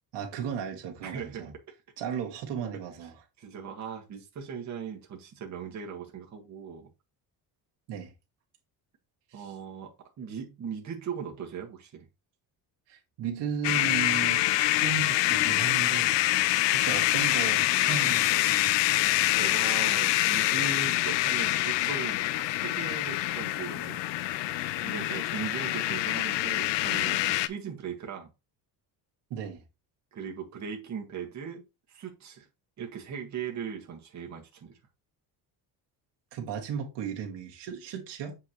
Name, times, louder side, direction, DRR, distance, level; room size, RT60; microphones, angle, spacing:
voice 1, 0.1-1.5 2.0-3.2 7.9-8.1 9.3-9.5 12.9-16.2 16.7-18.7 29.3-29.6 36.3-38.4, right 7 dB, 80° right, 1.8 m, -35 dB
voice 2, 1.0-1.5 3.4-6.9 9.3-12.1 19.3-24.0 24.8-28.3 30.1-31.6 31.9-32.5 32.8-34.8, right 7 dB, 40° right, 1.6 m, -39 dB
sound 1, 13.6-27.5, left 16 dB, 85° left, 0.6 m, -26 dB
8.0 x 4.7 x 3.0 m
cardioid pair, 155°, 42 cm